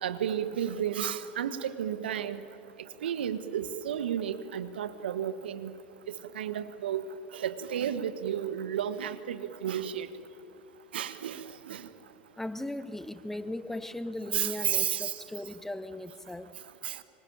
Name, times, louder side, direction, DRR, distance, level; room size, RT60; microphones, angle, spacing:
voice 1, 0.0-2.4 3.0-5.7 6.1-7.0 7.3-10.1 10.9-11.8 14.3-15.1 16.8-16.9, right 9 dB, 80° right, 1.5 m, -32 dB
voice 2, 12.4-16.5, left 1 dB, 5° left, 1.0 m, -38 dB
25.5 x 24.0 x 8.9 m
hypercardioid pair, 85°, 5 cm